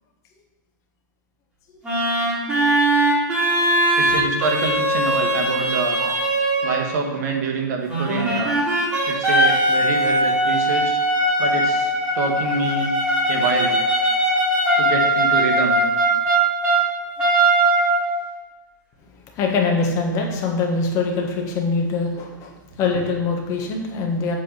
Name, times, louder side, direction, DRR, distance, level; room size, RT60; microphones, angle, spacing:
sound 1, 1.8-7.0 7.9-16.8 17.2-18.2, right 1 dB, 15° right, 2.8 m, -20 dB
voice 1, 4.0-6.2 6.6-8.6 9.1-11.0 11.4-12.9 13.3-13.8 14.8-15.8, right 4 dB, 55° right, 2 dB, 1.5 m, -26 dB
voice 2, 19.4-24.4, left 4 dB, 30° left, 1 dB, 1.3 m, -23 dB
8.1 x 3.9 x 6.6 m, 1.2 s
hypercardioid pair, 150°, 11 cm